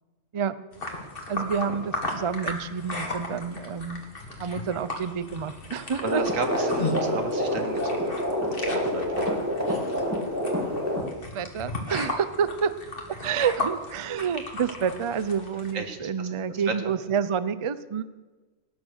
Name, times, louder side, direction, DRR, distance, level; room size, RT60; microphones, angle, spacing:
sound 1, 0.7-15.7, left 2 dB, 45° left, 2.2 m, -36 dB
voice 1, 1.3-4.0 4.4-6.2 11.1-12.7 13.2-18.0, right 7 dB, 40° right, 15 dB, 0.4 m, -28 dB
sound 2, 6.0-11.0, equal, 10° right, 2.2 m, -27 dB
voice 2, 6.0-8.1 8.5-9.4 15.7-16.6, right 4 dB, 90° right, 6 dB, 1.9 m, -34 dB
18.5 x 9.5 x 6.5 m, 1.2 s
omnidirectional pair, 1.3 m